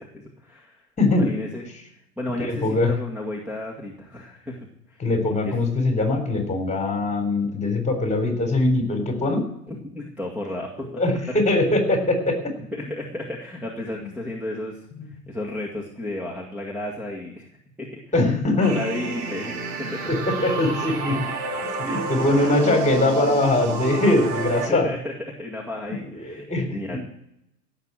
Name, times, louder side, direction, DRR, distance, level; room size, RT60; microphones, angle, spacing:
voice 1, 0.0-0.9 1.2-1.6 2.2-5.0 5.4-5.5 9.7-10.9 12.7-17.5 17.8-18.0 18.5-20.1 21.8-22.8 24.7-27.0, left 1 dB, 5° right, -1 dB, 2.1 m, -33 dB
voice 2, 1.0-1.3 2.4-2.9 5.0-9.4 10.8-12.4 18.1-18.8 20.1-21.3 21.6-24.9 25.9-27.0, left 2 dB, 15° left, 5 dB, 3.7 m, -22 dB
sound 1, 18.6-24.7, right 4 dB, 75° right, 3.7 m, -30 dB
16.5 x 6.8 x 7.6 m, 0.79 s
hypercardioid pair, 105°, 47 cm